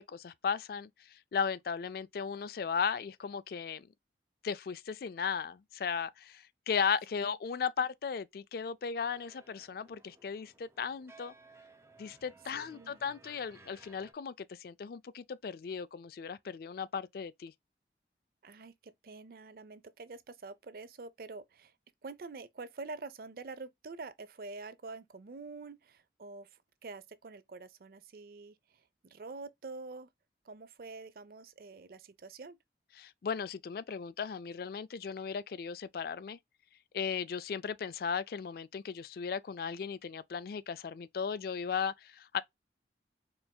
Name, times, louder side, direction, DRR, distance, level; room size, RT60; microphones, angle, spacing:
voice 1, 0.0-3.9 4.4-11.3 12.0-17.5 33.0-36.4 36.9-42.4, left 6 dB, 55° left, 0.3 m, -36 dB
sound 1, 9.0-14.1, right 2 dB, 15° right, 0.7 m, -59 dB
voice 2, 12.5-13.0 18.4-21.7 22.0-30.1 30.4-32.6, right 3 dB, 55° right, 0.4 m, -47 dB
4.4 x 3.3 x 2.2 m
head